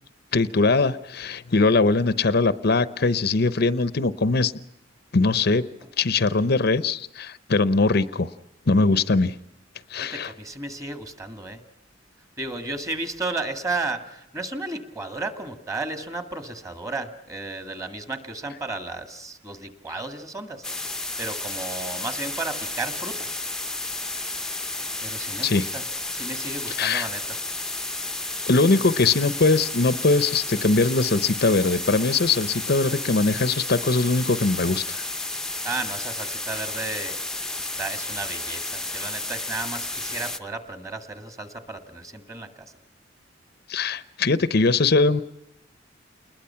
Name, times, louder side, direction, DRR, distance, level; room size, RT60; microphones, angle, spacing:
voice 1, 0.3-4.5 5.1-5.7 6.0-8.3 8.7-9.3 9.9-10.3 25.4-25.7 26.8-27.1 28.5-35.0 43.7-45.2, left 3 dB, 55° left, 14 dB, 0.8 m, -21 dB
voice 2, 10.0-11.6 12.4-20.6 21.2-23.3 25.0-25.8 26.1-27.4 35.6-37.2 37.6-42.7, right 3 dB, 15° right, 7 dB, 2.2 m, -33 dB
sound 1, 20.6-40.4, left 2 dB, 5° left, 0.9 m, -32 dB
29.0 x 21.0 x 5.8 m, 0.85 s
head